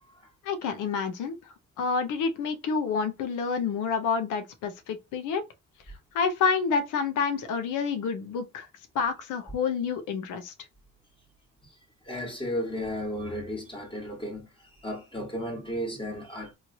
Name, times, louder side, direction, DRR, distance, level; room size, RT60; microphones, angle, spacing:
voice 1, 0.4-5.4 6.1-8.7 8.9-10.5, left 5 dB, 90° left, 0.8 m, -28 dB
voice 2, 12.0-16.5, equal, 15° left, 1.3 m, -34 dB
3.1 x 2.7 x 2.7 m
cardioid pair, 90°, 30 cm